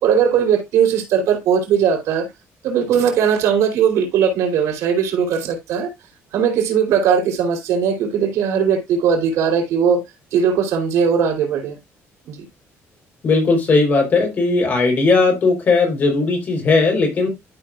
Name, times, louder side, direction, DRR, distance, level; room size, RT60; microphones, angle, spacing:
voice 1, 0.0-2.3 2.6-5.9 6.3-10.0 10.3-11.8 12.3-12.4, right 7 dB, 80° right, 3.2 m, -18 dB
voice 2, 13.2-17.3, left 3 dB, 35° left, 3.9 m, -17 dB
12.5 x 5.7 x 2.4 m
cardioid pair, 165°, 5 cm